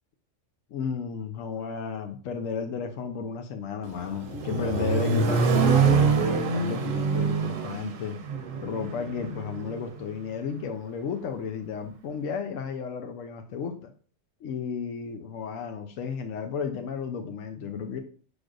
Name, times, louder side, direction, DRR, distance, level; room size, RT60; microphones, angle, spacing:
voice 1, 0.7-8.2 8.6-13.9 14.4-18.0, left 6 dB, 85° left, 6 dB, 1.0 m, -33 dB
Accelerating revving vroom, 3.8-9.9, right 5 dB, 85° right, 1.0 m, -25 dB
6.1 x 3.3 x 2.4 m, 0.42 s
omnidirectional pair, 1.3 m